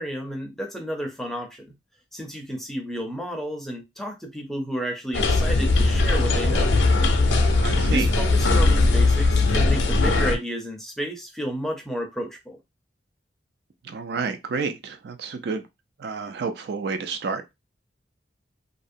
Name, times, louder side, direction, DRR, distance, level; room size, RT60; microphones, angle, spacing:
voice 1, 0.0-1.6 2.1-6.8 7.9-12.6, equal, ahead, 0.5 m, -31 dB
sound 1, 5.1-10.3, left 2 dB, 80° left, 0.5 m, -19 dB
voice 2, 7.6-8.1 13.8-15.6 16.0-17.4, right 4 dB, 60° right, 0.4 m, -29 dB
2.6 x 2.0 x 2.5 m
head